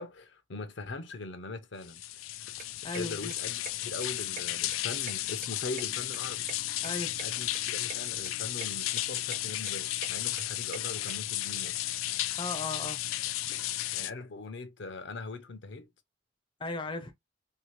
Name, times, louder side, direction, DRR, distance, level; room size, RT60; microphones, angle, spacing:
voice 1, 0.0-2.0 2.8-6.5 7.2-11.8 13.9-15.9, left 3 dB, 65° left, 0.7 m, -41 dB
sound 1, 1.8-14.1, left 14 dB, 85° left, 0.3 m, -34 dB
sound 2, 2.3-11.1, right 9 dB, 40° right, 0.3 m, -47 dB
voice 2, 2.8-3.3 6.8-7.2 12.4-13.0 16.6-17.1, left 3 dB, 25° left, 0.5 m, -36 dB
2.8 x 2.8 x 3.1 m
head